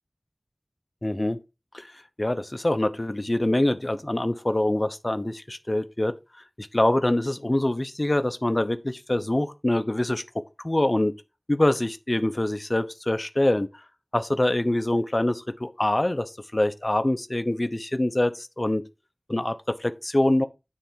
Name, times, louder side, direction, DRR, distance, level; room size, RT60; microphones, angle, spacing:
voice 1, 1.0-1.4 1.7-1.9 2.2-6.1 6.6-10.2 10.6-11.1 11.5-13.7 14.1-18.8 19.3-20.4, left 1 dB, 40° left, 0.8 m, -24 dB
9.9 x 3.4 x 5.7 m
wide cardioid pair, 45°, 0 cm